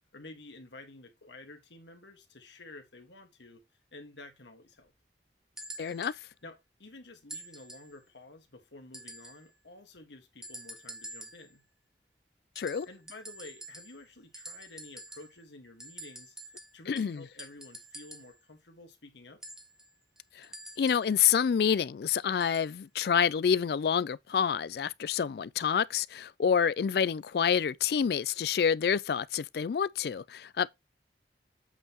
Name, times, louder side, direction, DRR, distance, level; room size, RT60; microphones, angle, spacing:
voice 1, 0.1-3.6 3.9-4.9 6.4-11.6 12.8-19.4, left 2 dB, 85° left, 1.7 m, -51 dB
sound 1, 5.6-6.2 7.3-8.0 8.9-9.5 10.4-11.5 12.5-14.1 14.3-15.4 15.8-18.4 19.4-21.1 22.4-22.7 23.6-23.7, right 1 dB, 5° right, 0.7 m, -47 dB
voice 2, 5.8-6.1 12.6-12.9 16.9-17.2 20.4-20.5 20.8-30.7, left 7 dB, 60° left, 0.3 m, -28 dB
8.1 x 5.6 x 3.0 m
head